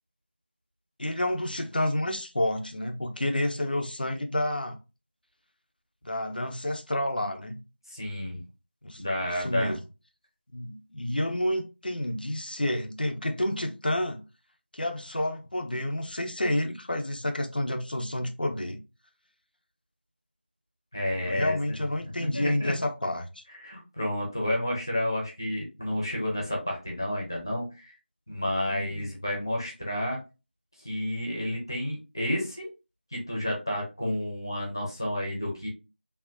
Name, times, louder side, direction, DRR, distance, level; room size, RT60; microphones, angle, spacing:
voice 1, 1.0-4.8 6.0-7.6 8.8-9.0 9.4-9.8 10.5-14.2 14.7-18.8 21.2-23.4 28.7-29.1, left 1 dB, 55° left, 0.6 m, -29 dB
voice 2, 7.9-8.4 9.0-9.8 20.9-21.6 22.0-22.7 23.6-27.9 28.3-30.2 30.8-32.7 33.1-35.7, left 1 dB, 20° left, 0.8 m, -30 dB
3.5 x 2.4 x 2.5 m
figure-of-eight pair, 180°, 6 cm